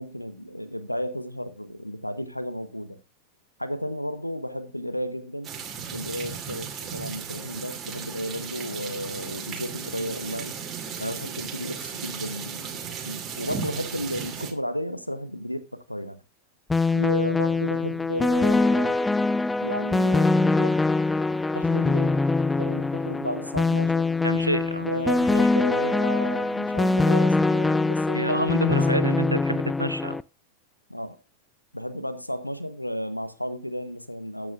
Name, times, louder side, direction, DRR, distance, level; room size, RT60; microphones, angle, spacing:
voice 1, 0.0-3.0 3.6-5.6 5.9-10.6 11.0-16.2 16.9-19.1 19.6-20.9 21.5-22.2 22.6-24.1 24.8-28.9 29.1-29.3 30.9-31.2 31.7-34.5, equal, 90° left, 1.1 m, -33 dB
sound 1, 5.4-14.5, right 6 dB, 25° right, 2.5 m, -36 dB
sound 2, 16.7-30.2, left 3 dB, 10° left, 0.4 m, -23 dB
voice 2, 24.2-24.9 28.1-30.2, right 1 dB, 90° right, 0.4 m, -27 dB
15.0 x 8.6 x 2.4 m
figure-of-eight pair, 90°, 0 cm